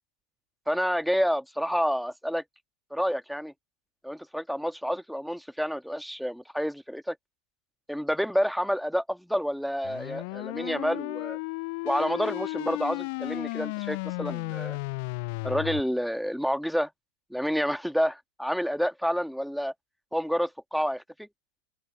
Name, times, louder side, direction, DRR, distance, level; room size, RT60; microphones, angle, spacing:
voice 1, 0.7-2.4 2.9-3.5 4.0-7.2 7.9-11.4 11.8-14.8 15.4-16.9 17.3-19.7 20.1-21.3, equal, ahead, 2.0 m, -29 dB
sound 1, 9.8-15.8, left 29 dB, 45° left, 0.5 m, -34 dB
open air
figure-of-eight pair, 90°, 0 cm